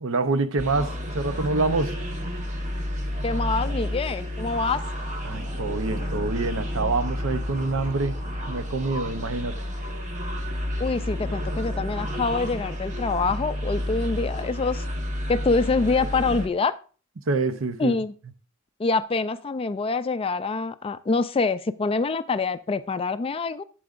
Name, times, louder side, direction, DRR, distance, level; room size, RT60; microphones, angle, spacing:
voice 1, 0.0-1.9 5.2-8.2 8.5-9.6 17.3-18.0, right 3 dB, 65° right, 0.7 m, -26 dB
sound 1, 0.6-16.5, equal, 35° right, 1.1 m, -30 dB
voice 2, 3.2-4.8 10.8-14.9 15.3-16.7 17.8-18.1 18.8-23.6, left 4 dB, 25° left, 0.3 m, -25 dB
11.5 x 7.7 x 2.5 m
head